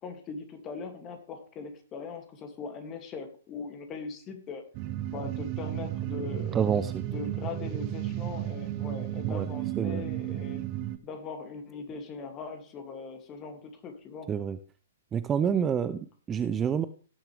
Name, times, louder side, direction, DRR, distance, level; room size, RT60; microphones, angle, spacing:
voice 1, 0.0-4.6 5.1-6.7 7.1-10.6 11.0-14.3, left 5 dB, 25° left, 5 dB, 2.5 m, -40 dB
sound 1, 4.7-11.0, right 13 dB, 35° right, 1.0 m, -33 dB
voice 2, 6.3-7.1 9.3-9.5 9.8-10.0 14.3-14.6 15.1-16.9, right 7 dB, 20° right, 15 dB, 0.6 m, -28 dB
17.5 x 7.2 x 3.4 m, 0.41 s
figure-of-eight pair, 115°, 0 cm